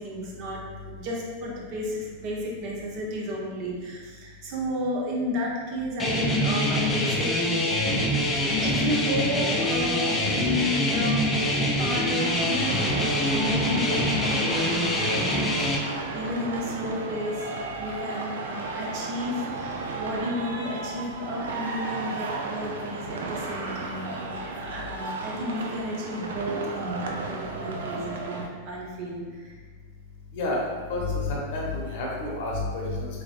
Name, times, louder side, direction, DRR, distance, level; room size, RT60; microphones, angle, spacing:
voice 1, 0.0-7.6 8.6-11.2 11.8-17.5 17.8-29.5, left 1 dB, 40° right, -2 dB, 0.8 m, -32 dB
sound 1, 6.0-15.8, left 1 dB, 20° left, 0.5 m, -25 dB
sound 2, 12.2-28.5, right 3 dB, 60° right, 0.4 m, -34 dB
voice 2, 31.3-33.1, left 2 dB, 50° left, -3 dB, 0.9 m, -29 dB
3.5 x 3.4 x 2.5 m, 1.5 s
figure-of-eight pair, 90°, 0 cm